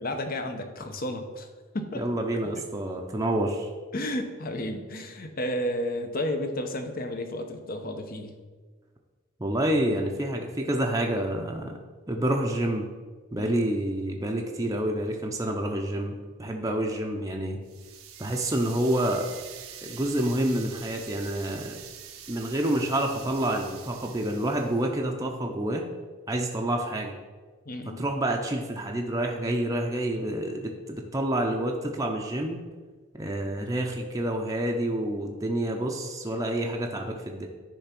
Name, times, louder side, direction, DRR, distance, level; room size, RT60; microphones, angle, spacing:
voice 1, 0.0-1.5 1.7-2.1 2.6-2.7 3.9-8.4 13.4-13.6 27.7-28.0, left 1 dB, 45° left, 6 dB, 0.8 m, -32 dB
voice 2, 2.0-3.7 9.4-11.8 12.1-12.9 13.3-17.6 18.2-19.3 19.8-21.8 22.3-25.9 26.3-27.2 28.0-32.6 33.1-37.5, right 1 dB, 15° right, 1 dB, 0.6 m, -28 dB
sound 1, 17.6-24.8, right 8 dB, 85° right, 0.9 m, -45 dB
10.0 x 3.5 x 5.9 m, 1.4 s
head